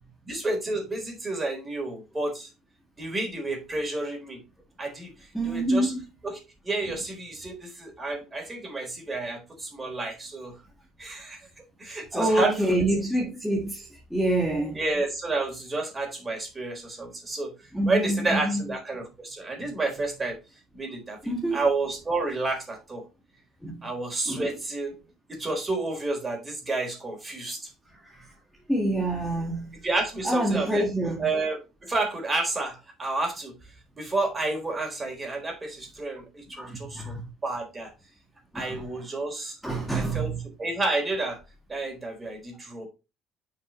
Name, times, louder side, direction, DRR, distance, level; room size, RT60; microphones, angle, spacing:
voice 1, 0.3-2.5 3.0-4.4 4.8-5.1 5.4-5.9 6.2-6.4 6.6-10.5 11.0-11.4 11.8-12.8 14.7-17.5 17.9-20.4 20.7-23.0 23.8-25.0 25.3-27.6 29.8-30.8 31.2-33.5 34.0-37.1 37.4-37.9 38.5-39.5 39.9-40.3 40.6-41.4 41.7-42.9, right 2 dB, 25° right, 4.1 m, -30 dB
voice 2, 5.3-6.0 12.1-14.8 17.7-18.7 19.6-19.7 21.2-21.7 23.6-23.9 24.3-24.6 28.0-28.3 28.7-29.8 30.2-31.3 36.6-37.2 38.5-39.0 39.6-40.5, right 1 dB, ahead, 1.7 m, -27 dB
9.3 x 5.8 x 3.1 m
cardioid pair, 115°, 0 cm